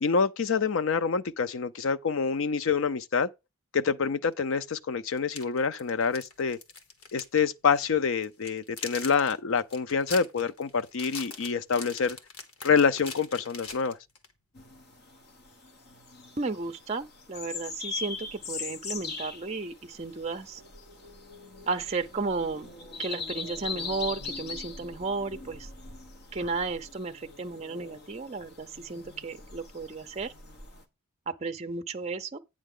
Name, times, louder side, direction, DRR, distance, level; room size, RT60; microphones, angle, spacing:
voice 1, 0.0-3.3 3.7-6.6 7.1-12.2 12.6-14.0, left 5 dB, 65° left, 0.5 m, -26 dB
sound 1, 4.3-4.4 5.2-7.4 7.6-7.8 8.2-14.3, left 4 dB, 90° left, 1.5 m, -42 dB
sound 2, 14.5-30.8, left 4 dB, 50° left, 1.2 m, -41 dB
voice 2, 16.4-20.6 21.7-22.7 23.0-25.7 26.3-30.3 31.3-32.4, right 3 dB, 30° right, 0.5 m, -33 dB
9.0 x 6.2 x 3.7 m
head